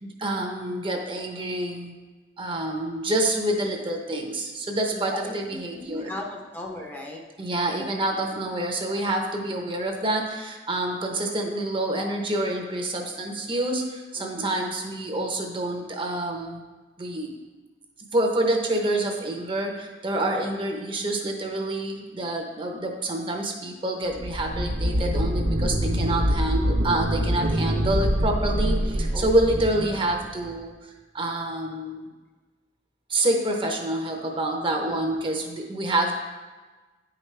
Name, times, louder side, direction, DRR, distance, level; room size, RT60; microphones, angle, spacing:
voice 1, 0.0-1.9 2.4-6.1 7.4-16.6 17.0-17.4 18.1-30.7 31.1-32.0 33.1-36.2, right 1 dB, 30° right, 2 dB, 0.8 m, -27 dB
voice 2, 5.7-7.2 14.2-14.3 14.6-14.9 29.1-29.3 34.8-35.2, left 1 dB, 10° left, -1 dB, 0.7 m, -37 dB
sound 1, 24.1-30.5, equal, 85° right, 0.8 m, -25 dB
9.6 x 4.9 x 3.3 m, 1.3 s
head